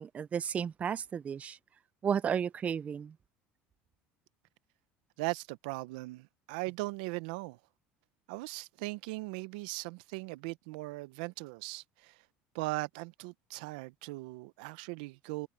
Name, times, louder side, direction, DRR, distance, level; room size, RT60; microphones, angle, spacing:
voice 1, 0.0-1.6 2.0-3.1, right 7 dB, 30° right, 0.4 m, -33 dB
voice 2, 5.2-7.6 8.3-12.2 12.5-15.5, right 23 dB, 85° right, 0.7 m, -39 dB
supercardioid pair, 115°, 5 cm